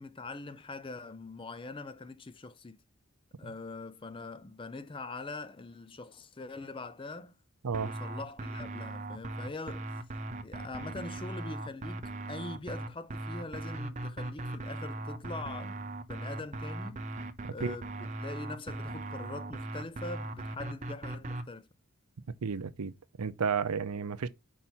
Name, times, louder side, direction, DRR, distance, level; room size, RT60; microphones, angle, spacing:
voice 1, 0.0-2.8 3.4-7.4 7.7-9.9 10.4-17.1 17.5-21.7, left 3 dB, 25° left, 0.4 m, -43 dB
sound 1, 7.7-21.4, right 2 dB, 30° right, 0.6 m, -39 dB
voice 2, 22.4-24.3, right 6 dB, 90° right, 0.6 m, -32 dB
5.4 x 4.6 x 4.4 m
head